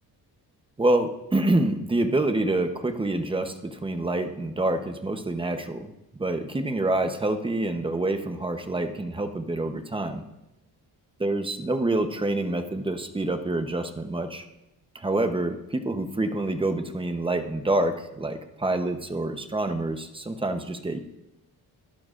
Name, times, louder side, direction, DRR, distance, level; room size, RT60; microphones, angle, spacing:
voice 1, 0.8-10.2 11.2-14.4 14.9-21.0, right 2 dB, 15° right, 7 dB, 0.8 m, -27 dB
23.5 x 11.5 x 2.5 m, 0.93 s
cardioid pair, 155°, 39 cm